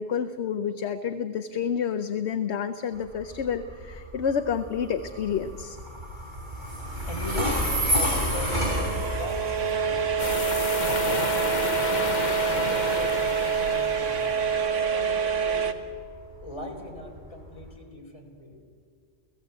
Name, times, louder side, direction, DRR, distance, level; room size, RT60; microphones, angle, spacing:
voice 1, 0.0-5.8, left 7 dB, 65° left, 8 dB, 1.0 m, -29 dB
Train, 2.9-17.7, equal, 40° right, 4.6 m, -31 dB
voice 2, 7.0-7.6 7.9-8.9 9.1-11.5 12.2-15.8 16.4-18.6, left 1 dB, 25° left, 1 dB, 3.9 m, -40 dB
sound 1, 8.1-15.7, right 7 dB, 75° right, 1.6 m, -27 dB
sound 2, 10.2-14.7, left 5 dB, 40° left, 0.9 m, -32 dB
30.0 x 17.0 x 8.1 m, 2.2 s
omnidirectional pair, 1.3 m